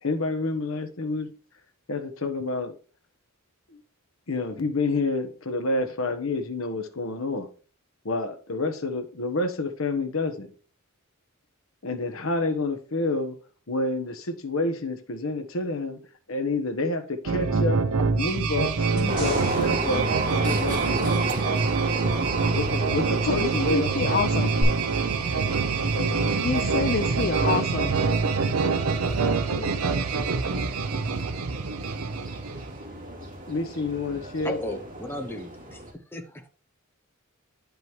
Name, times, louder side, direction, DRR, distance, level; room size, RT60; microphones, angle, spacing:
voice 1, 0.0-1.3 1.9-2.8 3.7-3.8 4.3-7.5 8.0-10.5 11.8-13.4 13.7-16.0 16.3-17.8 18.1-21.5 22.5-23.9 25.9-26.4 29.2-29.7 33.2-34.6, left 2 dB, 70° left, 1.2 m, -29 dB
sound 1, 17.3-32.8, right 4 dB, 90° right, 0.6 m, -25 dB
sound 2, 19.0-21.5 24.6-24.7, right 1 dB, 25° right, 3.4 m, -39 dB
sound 3, 19.1-35.9, right 2 dB, 40° right, 3.0 m, -34 dB
voice 2, 23.2-24.5 26.4-27.9, left 5 dB, 45° left, 0.4 m, -27 dB
voice 3, 34.4-36.5, left 1 dB, 10° left, 0.8 m, -35 dB
10.5 x 5.3 x 3.2 m
head